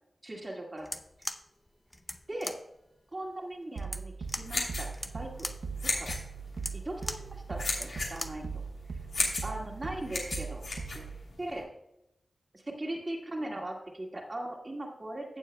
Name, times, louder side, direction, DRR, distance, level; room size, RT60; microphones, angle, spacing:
voice 1, 0.2-0.9 2.3-2.6 3.1-5.5 6.0-6.1 6.7-8.6 8.9-9.0 9.4-10.6 10.9-11.0 11.4-11.7 12.5-15.4, right 1 dB, 30° right, 0 dB, 2.0 m, -39 dB
sound 1, 0.8-8.5, left 1 dB, 10° left, 0.7 m, -42 dB
sound 2, 3.8-11.3, right 5 dB, 85° right, 0.7 m, -40 dB
sound 3, 4.2-11.6, left 3 dB, 75° left, 2.9 m, -36 dB
16.0 x 7.1 x 2.2 m, 0.85 s
wide cardioid pair, 95°, 0 cm